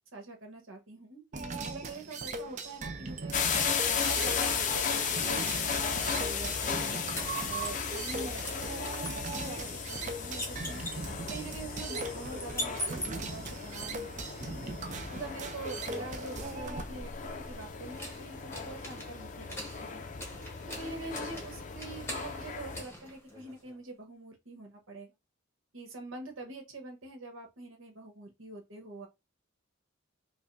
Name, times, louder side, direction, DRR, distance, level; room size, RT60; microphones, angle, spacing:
voice 1, 0.1-3.4 3.9-5.0 5.3-7.0 7.4-10.8 11.2-14.1 14.4-14.6 15.1-20.0 20.8-25.1 25.7-29.1, right 2 dB, 75° right, 1.2 m, -44 dB
sound 1, 1.3-16.8, right 3 dB, 35° right, 0.5 m, -40 dB
sound 2, 3.3-22.8, left 6 dB, 40° left, 0.5 m, -35 dB
sound 3, 6.9-8.2 8.4-13.5 16.3-23.8, left 1 dB, 10° left, 0.9 m, -43 dB
4.9 x 2.2 x 2.6 m
head